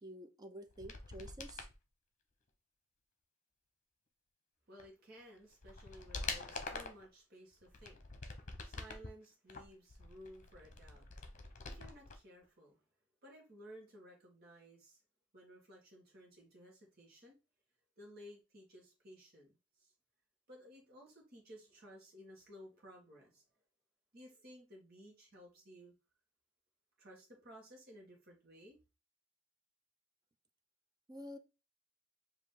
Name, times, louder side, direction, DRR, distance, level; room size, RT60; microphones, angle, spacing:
voice 1, 0.0-1.7 31.1-31.4, equal, 20° right, 0.5 m, -49 dB
sound 1, 0.7-1.7 4.8-4.9 5.4-7.1 7.6-9.1 9.5-12.2 12.4-12.5, left 3 dB, 40° left, 0.9 m, -46 dB
voice 2, 4.7-8.0 8.4-11.1 11.7-12.8 13.2-15.0 15.3-17.4 18.0-19.9 20.5-23.4 24.1-25.9 27.0-28.8, equal, 50° right, 1.5 m, -57 dB
4.8 x 2.8 x 3.7 m
head